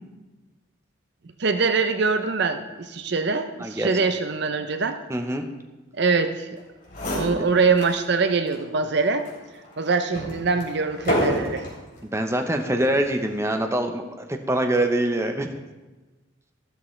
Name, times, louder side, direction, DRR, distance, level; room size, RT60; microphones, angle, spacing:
voice 1, 1.4-5.0 5.9-6.5 7.1-9.3 9.8-11.6, right 4 dB, 55° right, 9 dB, 0.6 m, -23 dB
voice 2, 3.6-4.0 5.1-5.4 12.0-15.5, right 1 dB, 15° right, 5 dB, 0.8 m, -24 dB
sound 1, 6.6-6.7 6.9-8.0 8.5-8.6 9.2-11.8 12.6-13.0, equal, 45° left, 3.6 m, -29 dB
13.0 x 13.0 x 3.2 m, 1.2 s
head